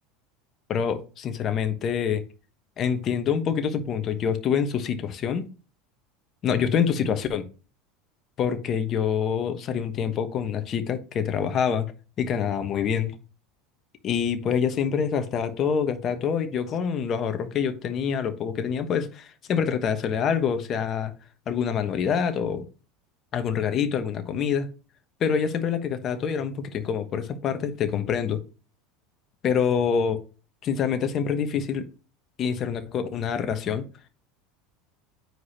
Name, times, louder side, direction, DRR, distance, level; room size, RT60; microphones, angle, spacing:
voice 1, 0.7-2.2 2.8-5.5 6.4-7.5 8.4-11.9 12.2-13.2 14.0-21.1 21.5-22.6 23.3-24.7 25.2-28.4 29.4-30.2 30.6-31.8 32.4-33.9, left 7 dB, 45° left, 1.1 m, -26 dB
7.7 x 4.9 x 2.9 m
hypercardioid pair, 95°, 0 cm